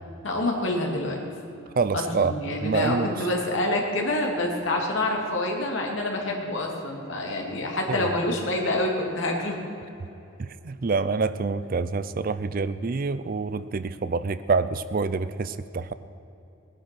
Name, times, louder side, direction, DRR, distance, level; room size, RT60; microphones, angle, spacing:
voice 1, 0.2-1.2 1.9-9.6, left 1 dB, 60° left, 0 dB, 2.5 m, -27 dB
voice 2, 1.8-2.3 2.6-3.2 7.9-8.1 10.4-15.9, right 4 dB, 40° right, 14 dB, 0.4 m, -27 dB
19.0 x 11.0 x 6.0 m, 2.9 s
head